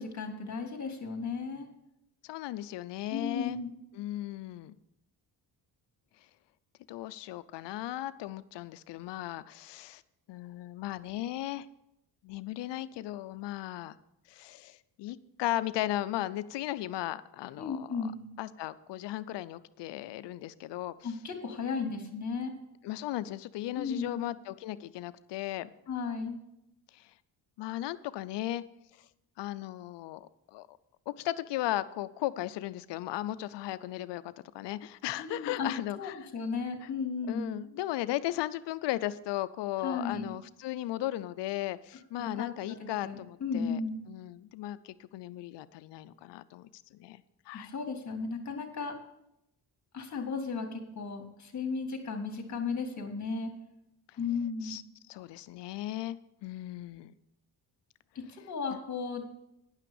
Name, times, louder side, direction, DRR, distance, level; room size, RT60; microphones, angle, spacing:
voice 1, 0.0-1.7 3.1-3.7 17.6-18.3 21.0-22.5 23.8-24.2 25.9-26.4 35.2-35.7 36.0-37.6 39.8-40.3 42.2-44.0 47.5-49.0 49.9-53.5 54.2-54.8 58.1-59.2, left 5 dB, 45° left, 3 dB, 2.3 m, -35 dB
voice 2, 2.2-3.6 3.9-4.8 6.9-10.0 10.3-11.7 12.2-14.0 14.3-18.1 18.4-20.9 22.8-25.7 26.9-27.1 27.6-28.6 29.4-30.8 31.1-36.3 37.3-43.8 44.1-47.7 54.6-54.8 55.1-57.1, left 14 dB, 85° left, 15 dB, 0.6 m, -36 dB
10.5 x 5.8 x 7.1 m, 0.85 s
cardioid pair, 90°, 41 cm